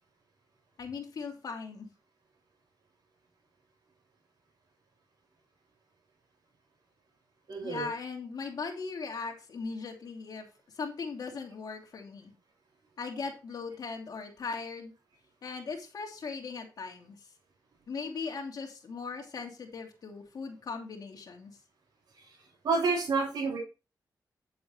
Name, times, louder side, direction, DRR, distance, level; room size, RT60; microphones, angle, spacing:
voice 1, 0.8-1.9 7.6-10.5 10.7-12.3 13.0-14.9 15.4-17.2 17.9-21.6, left 4 dB, 60° left, 2 dB, 2.9 m, -39 dB
voice 2, 7.5-7.9 22.2-22.3 22.6-23.6, right 4 dB, 80° right, -4 dB, 3.5 m, -29 dB
9.7 x 7.7 x 3.1 m, 0.31 s
wide cardioid pair, 130°, 7 cm